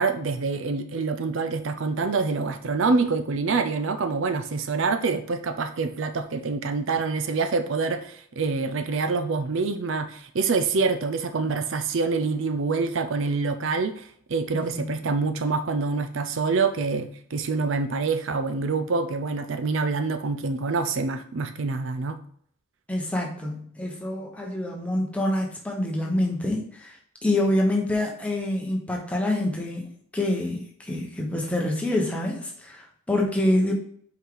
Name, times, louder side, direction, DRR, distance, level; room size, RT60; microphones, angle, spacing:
voice 1, 0.0-22.2, right 4 dB, 65° right, 8 dB, 0.5 m, -26 dB
voice 2, 14.5-15.1 22.9-33.7, left 1 dB, 5° left, -1 dB, 1.1 m, -26 dB
5.5 x 4.7 x 3.8 m, 0.62 s
head